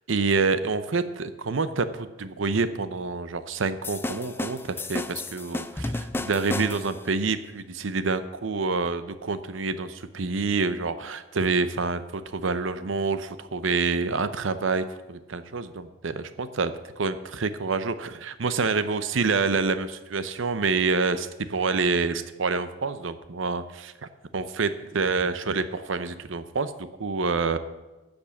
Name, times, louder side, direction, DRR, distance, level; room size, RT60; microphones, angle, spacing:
voice 1, 0.1-27.6, right 4 dB, 80° right, 12 dB, 0.7 m, -27 dB
sound 1, 3.8-7.1, left 2 dB, 10° left, 0.3 m, -33 dB
13.5 x 5.3 x 7.1 m, 1.1 s
head